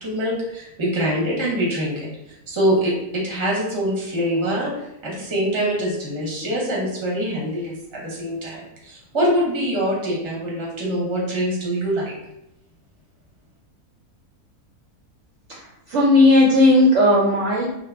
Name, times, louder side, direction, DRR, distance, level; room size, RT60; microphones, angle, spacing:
voice 1, 0.0-2.1 2.5-12.1, equal, 25° right, -4 dB, 0.7 m, -24 dB
voice 2, 15.6-17.7, left 1 dB, 65° right, -4 dB, 0.8 m, -16 dB
2.8 x 2.2 x 3.4 m, 0.84 s
omnidirectional pair, 1.6 m